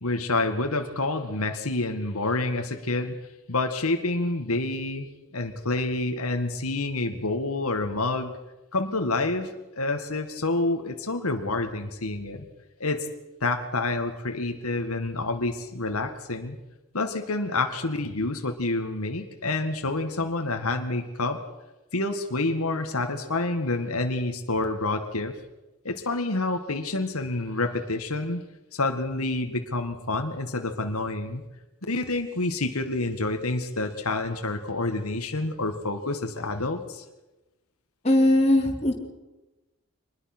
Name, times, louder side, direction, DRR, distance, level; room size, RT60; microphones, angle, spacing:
voice 1, 0.0-3.2 3.5-8.4 8.7-9.5 9.8-12.5 12.8-13.1 13.4-16.6 16.9-21.4 21.9-25.3 25.8-28.4 28.7-31.4 31.9-37.0, left 2 dB, 85° left, 6 dB, 2.0 m, -28 dB
voice 2, 38.0-38.9, left 1 dB, 30° left, 0 dB, 3.4 m, -20 dB
25.5 x 20.5 x 6.2 m, 1.0 s
head